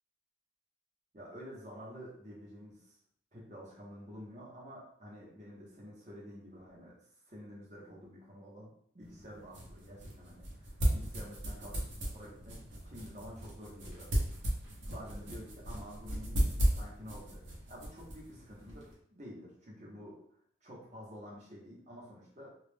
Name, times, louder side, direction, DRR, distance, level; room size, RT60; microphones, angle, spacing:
voice 1, 1.1-3.0 3.3-7.0 7.3-14.1 14.4-14.6 14.9-20.2 20.6-22.5, equal, 35° right, -4 dB, 0.7 m, -49 dB
sound 1, 9.0-18.9, right 1 dB, 75° right, 0.7 m, -36 dB
2.3 x 2.0 x 3.2 m, 0.63 s
head